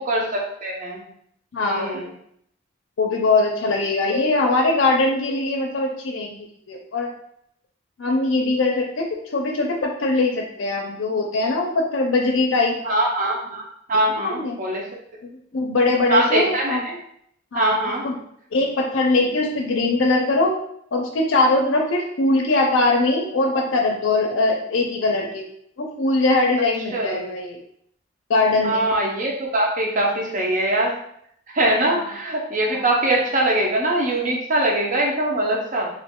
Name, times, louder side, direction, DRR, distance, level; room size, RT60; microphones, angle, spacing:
voice 1, 0.1-1.0 1.6-2.1 12.8-14.8 16.1-17.0 17.5-18.0 26.9-27.2 28.6-31.0 31.5-35.9, right 1 dB, 40° right, -1 dB, 0.7 m, -22 dB
voice 2, 1.5-2.0 3.0-6.4 6.7-7.1 8.0-12.8 14.1-14.6 15.5-16.8 17.5-17.8 18.0-18.2 18.5-20.5 20.9-25.4 25.8-27.6 28.3-28.9 31.9-32.1 32.7-32.9, left 2 dB, 70° left, 1 dB, 0.4 m, -21 dB
3.0 x 2.5 x 3.6 m, 0.70 s
head